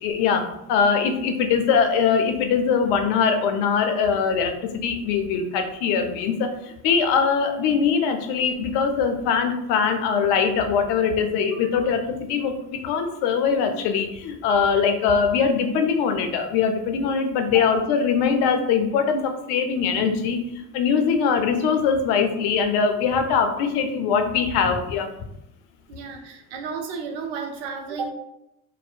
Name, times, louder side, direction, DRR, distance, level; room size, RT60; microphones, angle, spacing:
voice 1, 0.0-25.1, left 6 dB, 65° left, 6 dB, 0.6 m, -22 dB
voice 2, 25.9-28.1, right 5 dB, 65° right, 4 dB, 0.6 m, -32 dB
2.6 x 2.1 x 2.4 m, 0.83 s
hypercardioid pair, 75°, 44 cm